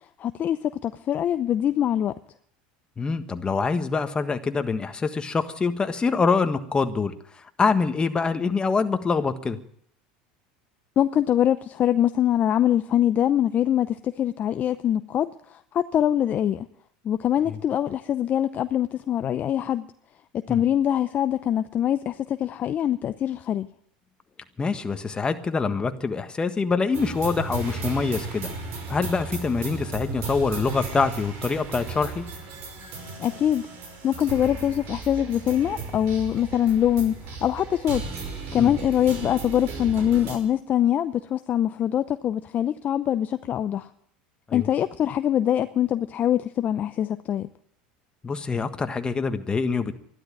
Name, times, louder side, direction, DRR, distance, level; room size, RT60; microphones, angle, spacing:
voice 1, 0.2-2.1 11.0-16.7 17.0-19.9 20.4-23.7 33.2-33.7 34.0-38.0 38.5-43.9 44.5-47.5, left 10 dB, 40° left, 11 dB, 0.6 m, -23 dB
voice 2, 3.0-7.1 7.6-9.6 20.5-20.6 24.6-28.5 28.9-32.2 38.6-38.7 44.5-44.7 48.2-49.9, left 4 dB, 20° left, 8 dB, 1.5 m, -25 dB
sound 1, 26.9-40.4, right 4 dB, 55° right, 5.5 m, -35 dB
13.0 x 12.0 x 8.8 m, 0.67 s
supercardioid pair, 100°, 4 cm